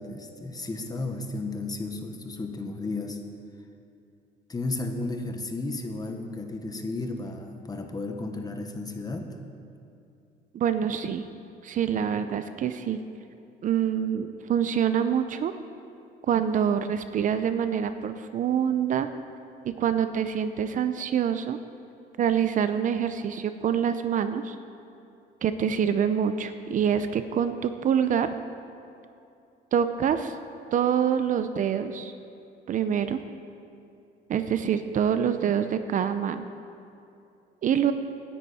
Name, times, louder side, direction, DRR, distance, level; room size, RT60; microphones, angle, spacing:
voice 1, 0.0-3.2 4.5-9.4, left 2 dB, 20° left, 5 dB, 1.3 m, -33 dB
voice 2, 10.5-11.2 11.6-13.0 13.6-15.5 16.3-19.1 19.6-21.6 22.2-24.6 25.4-28.3 29.7-30.3 30.7-32.1 32.7-33.2 34.3-36.5 37.6-37.9, right 8 dB, 50° right, 10 dB, 0.6 m, -26 dB
17.0 x 10.0 x 4.3 m, 2.6 s
cardioid pair, 110°, 17 cm